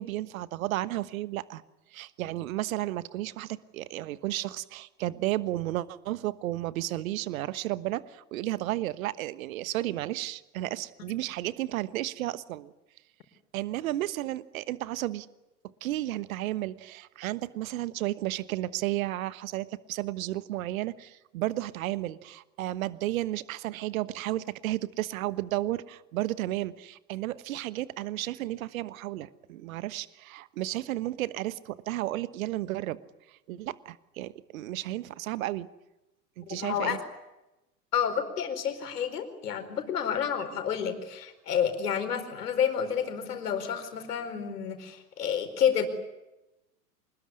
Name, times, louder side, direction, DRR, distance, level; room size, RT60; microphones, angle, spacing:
voice 1, 0.0-1.6 1.9-12.7 13.5-15.3 15.8-33.0 33.3-35.7 36.4-37.0, right 15 dB, 55° right, 16 dB, 1.3 m, -33 dB
voice 2, 36.5-37.0 37.9-45.9, left 8 dB, 65° left, 7 dB, 4.7 m, -29 dB
26.0 x 21.0 x 9.8 m, 0.97 s
figure-of-eight pair, 100°, 50 cm